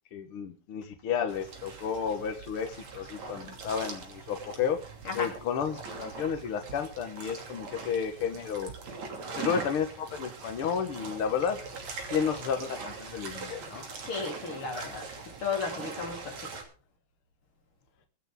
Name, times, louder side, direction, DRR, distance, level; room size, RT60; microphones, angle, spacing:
voice 1, 0.1-4.8 5.1-8.7 9.4-11.6 12.1-13.8, left 7 dB, 65° left, 7 dB, 1.4 m, -32 dB
sound 1, 1.3-16.6, right 4 dB, 50° right, 3.9 m, -42 dB
voice 2, 14.1-15.1 15.4-16.4, left 5 dB, 35° left, 1 dB, 4.4 m, -33 dB
24.5 x 8.3 x 3.7 m, 0.38 s
omnidirectional pair, 4.1 m